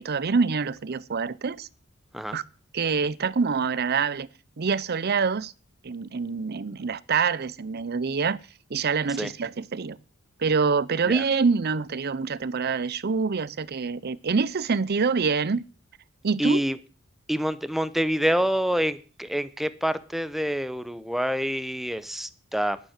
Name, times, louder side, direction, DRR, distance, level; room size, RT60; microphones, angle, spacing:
voice 1, 0.0-1.7 2.3-2.4 2.7-4.3 4.6-5.5 5.8-8.4 8.7-10.0 10.4-15.6 16.2-16.6, right 5 dB, 50° right, 0.6 m, -26 dB
voice 2, 16.4-16.8 17.3-22.8, equal, ahead, 0.8 m, -27 dB
11.5 x 9.2 x 6.6 m
head